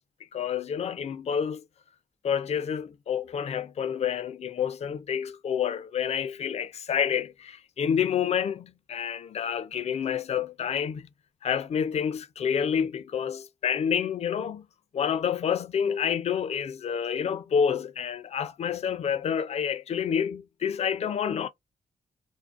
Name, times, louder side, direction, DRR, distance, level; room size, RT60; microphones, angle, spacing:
voice 1, 0.3-1.6 2.2-11.1 11.4-14.6 14.9-21.5, left 8 dB, 50° left, 0.4 m, -28 dB
2.5 x 2.0 x 2.4 m
cardioid pair, 70°, 14 cm